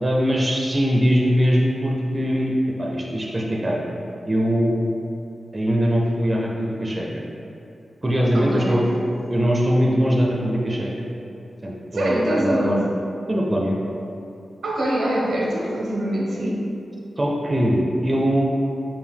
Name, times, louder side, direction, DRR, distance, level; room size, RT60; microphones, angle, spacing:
voice 1, 0.0-2.5 2.8-3.8 4.3-4.8 5.5-7.2 8.0-8.9 9.3-11.1 11.6-12.8 13.3-13.8 17.2-18.5, equal, 25° right, -2 dB, 0.4 m, -21 dB
voice 2, 8.3-8.8 11.9-12.8 14.6-16.6, right 1 dB, 80° right, -3 dB, 0.7 m, -23 dB
4.7 x 2.2 x 3.5 m, 2.7 s
wide cardioid pair, 105°, 0 cm